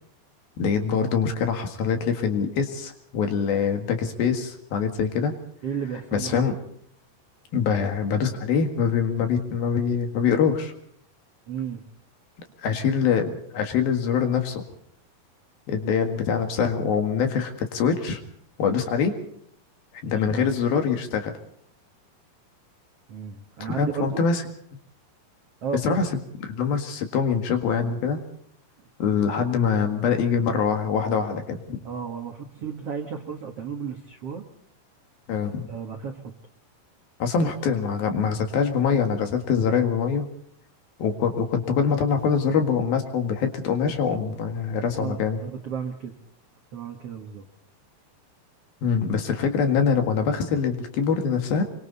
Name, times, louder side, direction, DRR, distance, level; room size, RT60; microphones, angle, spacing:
voice 1, 0.6-5.3 6.1-6.6 7.5-10.7 12.6-14.6 15.7-18.2 18.6-19.2 20.0-21.3 23.6-24.4 25.7-26.1 26.4-28.2 29.0-31.8 35.3-35.6 37.2-40.3 41.0-45.4 48.8-51.6, left 6 dB, 60° left, 5 dB, 3.4 m, -24 dB
voice 2, 5.6-6.4 11.5-11.8 20.1-20.5 23.1-24.3 25.6-26.0 31.8-34.4 35.7-36.2 37.4-37.5 44.9-46.1 46.7-47.4, right 7 dB, 65° right, 4 dB, 1.5 m, -33 dB
27.5 x 23.5 x 4.1 m, 0.63 s
omnidirectional pair, 5.1 m